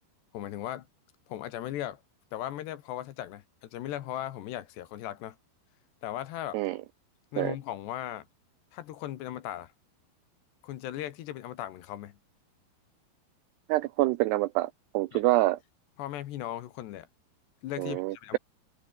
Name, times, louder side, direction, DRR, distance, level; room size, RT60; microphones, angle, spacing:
voice 1, 0.3-0.9 1.3-2.0 2.3-5.4 6.0-6.6 7.3-8.3 8.7-9.7 10.6-12.2 15.1-15.2 16.0-17.1 17.6-18.4, left 12 dB, 70° left, 3.2 m, -37 dB
voice 2, 13.7-15.6 17.8-18.4, right 18 dB, 90° right, 2.3 m, -26 dB
omnidirectional pair, 5.6 m